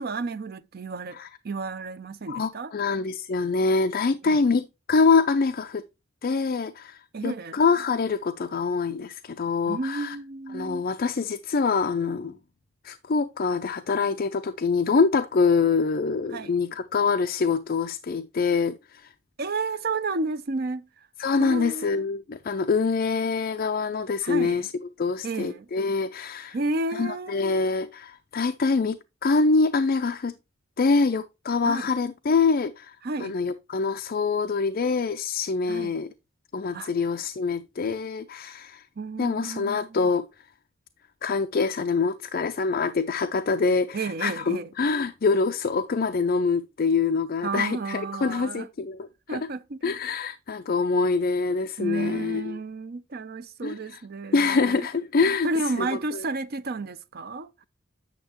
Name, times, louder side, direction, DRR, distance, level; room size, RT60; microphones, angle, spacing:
voice 1, 0.0-1.2 1.4-2.7 4.3-4.4 7.1-7.6 9.7-10.8 16.3-16.5 19.4-20.9 21.4-22.0 24.2-24.7 25.2-25.7 26.5-27.8 31.6-31.9 33.0-33.4 35.7-36.0 36.7-36.9 39.0-40.1 43.9-44.7 47.4-48.7 49.3-49.8 51.8-54.9 55.4-57.6, right 3 dB, 50° right, 0.6 m, -32 dB
voice 2, 2.3-5.8 6.2-10.2 10.5-12.4 12.8-19.1 21.2-24.7 25.0-26.6 26.9-30.3 30.8-36.1 36.5-38.8 39.2-40.2 41.2-49.4 49.8-52.5 53.6-54.0 54.3-55.5 55.8-55.9 56.1-56.2, left 4 dB, 50° left, 0.4 m, -25 dB
9.0 x 6.4 x 3.0 m
head